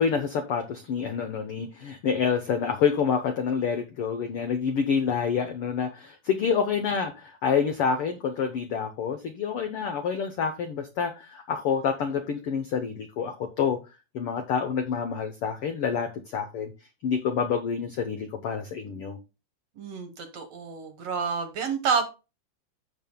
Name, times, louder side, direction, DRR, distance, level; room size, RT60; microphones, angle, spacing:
voice 1, 0.0-13.8 14.1-16.7 17.0-19.2, left 6 dB, 85° left, 1.2 m, -27 dB
voice 2, 19.8-22.1, right 6 dB, 60° right, 1.8 m, -29 dB
16.0 x 5.4 x 2.2 m
omnidirectional pair, 3.8 m